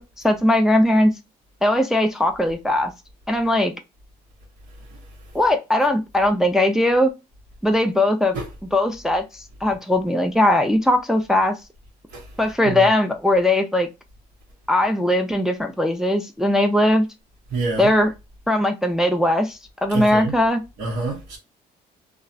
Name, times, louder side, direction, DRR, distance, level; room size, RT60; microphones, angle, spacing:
voice 1, 0.2-1.1 1.6-2.9 3.3-3.7 5.3-7.1 7.6-8.4 8.7-11.6 12.4-13.9 14.7-17.1 17.8-18.1 18.5-20.6, left 1 dB, 5° right, 0.3 m, -19 dB
voice 2, 17.5-17.9 19.9-20.3 20.8-21.4, right 3 dB, 80° right, 1.0 m, -27 dB
2.3 x 2.0 x 2.6 m
cardioid pair, 110°, 17 cm